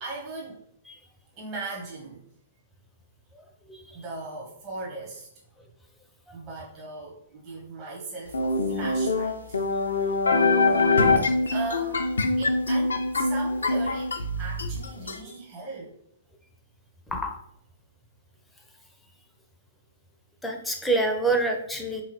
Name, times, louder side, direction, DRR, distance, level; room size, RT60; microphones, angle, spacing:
voice 1, 0.0-0.6 1.4-2.3 3.9-5.3 6.3-15.9, right 3 dB, 30° right, -4 dB, 0.9 m, -39 dB
sound 1, 8.3-15.2, left 3 dB, 70° left, 0.4 m, -24 dB
voice 2, 20.4-22.0, right 2 dB, 5° left, 3 dB, 0.5 m, -26 dB
3.7 x 2.9 x 2.9 m, 0.75 s
figure-of-eight pair, 110°, 0 cm